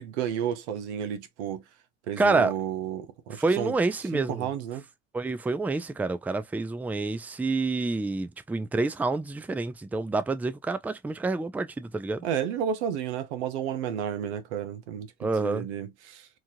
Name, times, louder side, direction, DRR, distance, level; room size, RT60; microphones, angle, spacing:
voice 1, 0.0-1.6 2.1-3.7 4.1-4.8 12.2-16.3, right 9 dB, 90° right, 0.7 m, -32 dB
voice 2, 2.2-2.5 3.3-4.5 5.1-12.3 15.2-15.7, right 3 dB, 5° right, 0.4 m, -28 dB
3.0 x 2.4 x 2.6 m
supercardioid pair, 85°, 33 cm